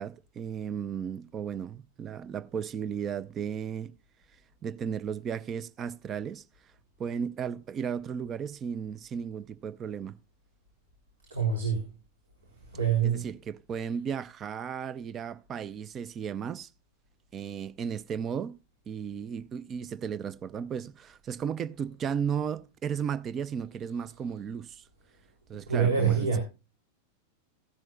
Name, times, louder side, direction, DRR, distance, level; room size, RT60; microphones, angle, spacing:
voice 1, 0.0-3.9 4.6-6.4 7.0-10.1 13.0-16.7 17.3-18.6 18.9-24.8 25.5-26.4, right 7 dB, 25° right, 0.5 m, -35 dB
voice 2, 11.3-11.9 12.5-13.3 25.5-26.4, right 7 dB, 70° right, 3.1 m, -26 dB
15.5 x 10.5 x 2.3 m
figure-of-eight pair, 90°, 0 cm